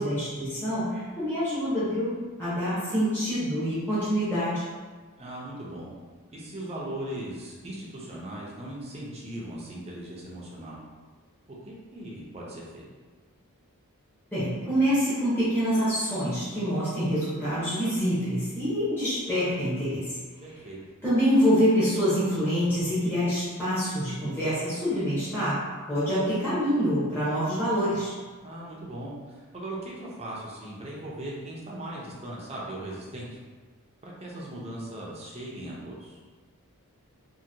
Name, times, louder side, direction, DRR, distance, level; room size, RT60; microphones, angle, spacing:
voice 1, 0.0-4.6 14.3-20.2 21.0-25.6 25.9-28.1, equal, 10° left, -13 dB, 0.9 m, -26 dB
voice 2, 5.2-5.9 6.3-10.8 11.7-12.8 20.4-20.8 28.4-33.3 34.0-36.2, right 1 dB, 30° right, -4 dB, 0.6 m, -38 dB
2.8 x 2.7 x 2.7 m, 1.4 s
head